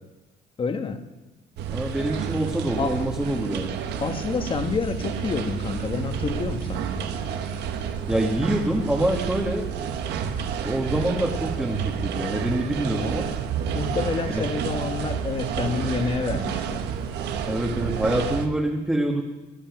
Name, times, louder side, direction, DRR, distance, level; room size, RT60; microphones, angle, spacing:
voice 1, 0.6-1.0 2.8-3.1 4.0-7.2 13.7-16.9, left 4 dB, 30° left, 8 dB, 1.3 m, -28 dB
sound 1, 1.6-18.5, right 7 dB, 80° right, 1.1 m, -30 dB
voice 2, 1.7-3.7 8.1-9.8 10.6-13.2 14.3-14.5 17.5-19.2, right 1 dB, 5° right, 0 dB, 1.4 m, -26 dB
18.0 x 8.6 x 6.0 m, 1.1 s
cardioid pair, 110°, 17 cm